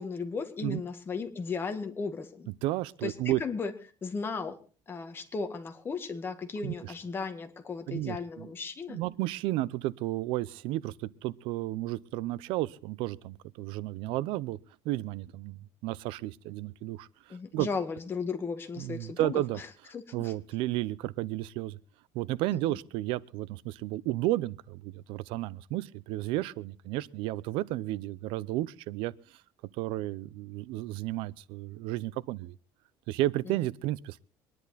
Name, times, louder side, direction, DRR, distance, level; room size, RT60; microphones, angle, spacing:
voice 1, 0.0-2.5 3.0-3.1 3.4-3.7 4.0-4.5 4.9-9.0 17.3-19.4 19.9-20.3 22.5-22.6 33.5-33.6, left 4 dB, 25° left, 1.9 m, -35 dB
voice 2, 2.6-3.4 6.6-6.9 7.9-8.5 8.9-14.6 14.8-15.6 15.8-17.7 18.8-19.6 20.1-21.8 22.1-29.1 29.8-32.5 33.1-34.2, right 16 dB, 85° right, 0.6 m, -32 dB
24.5 x 11.0 x 4.1 m
cardioid pair, 150°, 9 cm